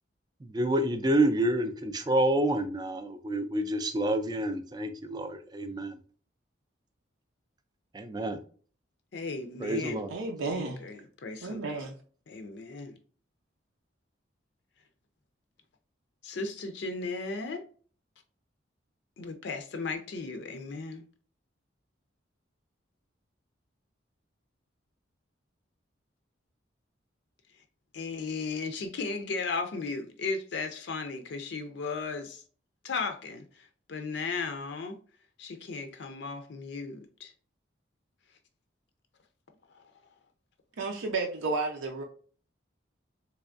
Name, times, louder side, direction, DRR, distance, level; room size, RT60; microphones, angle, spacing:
voice 1, 0.4-5.9 7.9-8.4 9.6-10.1, right 1 dB, 20° right, 0.3 m, -28 dB
voice 2, 9.1-10.1 10.5-11.7 12.3-12.9 16.2-17.6 19.2-21.0 27.9-32.4 32.8-33.4 33.9-35.0 35.4-37.3, left 4 dB, 60° left, 0.5 m, -35 dB
voice 3, 10.1-10.8 11.4-12.0 40.8-42.0, right 3 dB, 90° right, 0.6 m, -32 dB
3.4 x 3.0 x 2.4 m
head